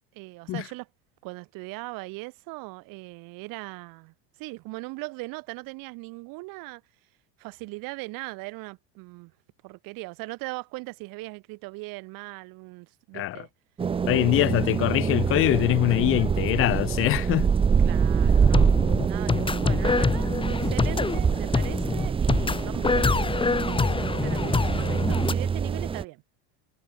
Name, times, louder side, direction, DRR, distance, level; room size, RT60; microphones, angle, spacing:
voice 1, 0.1-0.9 1.2-6.8 7.4-9.3 9.6-13.5 17.8-26.2, right 25 dB, 65° right, 5.6 m, -39 dB
sound 1, 13.8-26.0, right 6 dB, 15° right, 0.6 m, -25 dB
voice 2, 14.1-17.5, left 16 dB, 35° left, 0.6 m, -23 dB
sound 2, 18.2-25.3, left 4 dB, 15° left, 2.7 m, -26 dB
cardioid pair, 140°, 37 cm